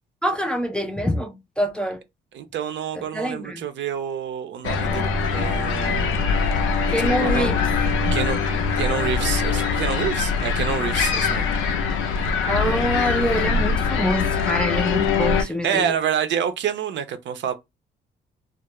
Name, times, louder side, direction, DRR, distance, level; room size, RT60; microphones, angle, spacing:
voice 1, 0.2-2.0 2.9-3.7 6.9-7.7 12.4-15.9, equal, 5° left, 0.4 m, -25 dB
voice 2, 2.3-6.2 7.2-7.5 8.1-8.4 8.8-11.5 15.4-17.5, right 8 dB, 65° right, 0.6 m, -27 dB
sound 1, 4.6-15.4, left 5 dB, 85° left, 0.5 m, -22 dB
2.3 x 2.0 x 2.9 m
cardioid pair, 90°, 20 cm